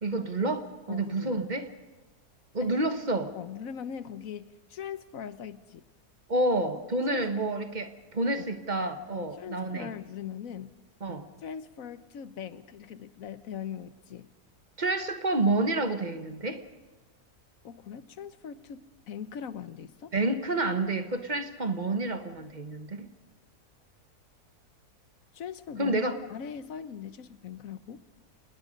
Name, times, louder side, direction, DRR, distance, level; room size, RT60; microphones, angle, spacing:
voice 1, 0.0-1.7 2.5-3.3 6.3-9.9 11.0-11.3 14.8-16.6 20.1-23.1 25.8-26.2, right 2 dB, 30° right, 9 dB, 1.3 m, -29 dB
voice 2, 0.9-1.5 2.6-2.8 3.3-5.8 7.1-7.3 8.3-8.5 9.1-10.7 11.4-14.3 17.6-20.1 25.3-26.0 26.3-28.0, left 8 dB, 65° left, 13 dB, 1.3 m, -40 dB
27.0 x 20.0 x 5.2 m, 1.2 s
omnidirectional pair, 1.7 m